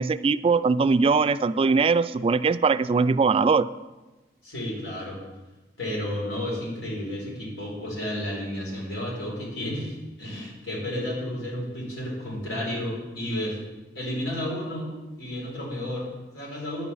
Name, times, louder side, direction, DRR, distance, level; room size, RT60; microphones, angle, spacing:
voice 1, 0.0-3.7, right 4 dB, 30° right, 14 dB, 0.3 m, -21 dB
voice 2, 4.4-5.2 5.8-13.6 13.9-14.9 15.2-16.9, left 1 dB, 90° left, -3 dB, 4.6 m, -32 dB
10.5 x 5.5 x 8.5 m, 1.1 s
head